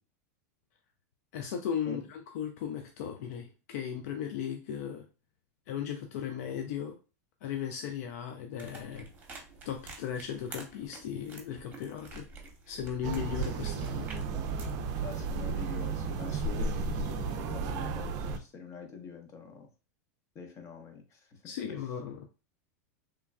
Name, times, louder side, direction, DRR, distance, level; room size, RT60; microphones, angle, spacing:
voice 1, 1.3-5.1 5.7-7.0 7.4-9.1 9.6-12.3 12.7-14.1 21.4-22.3, left 8 dB, 70° left, 5 dB, 0.4 m, -36 dB
sound 1, 8.6-14.8, right 3 dB, 20° right, 0.9 m, -47 dB
sound 2, 13.0-18.4, right 4 dB, 45° right, 0.4 m, -33 dB
voice 2, 15.0-19.7 20.3-21.4 21.7-21.8, left 5 dB, 35° left, 5 dB, 0.8 m, -44 dB
3.1 x 2.2 x 2.3 m, 0.33 s
hypercardioid pair, 115°, 9 cm